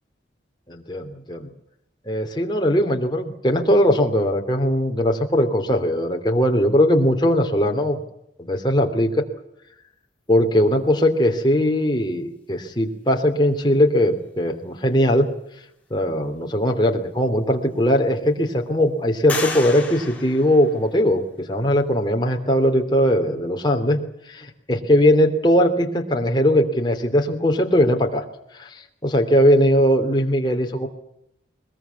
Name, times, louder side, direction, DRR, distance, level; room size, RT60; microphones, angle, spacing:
voice 1, 0.7-1.5 2.1-8.0 8.4-9.2 10.3-15.3 15.9-24.0 24.3-28.2 28.5-30.9, equal, 25° left, 3 dB, 3.0 m, -20 dB
sound 1, 17.0-17.1 17.7-18.4 19.3-21.2, left 3 dB, 10° left, 4.4 m, -32 dB
21.5 x 21.5 x 8.3 m, 0.79 s
head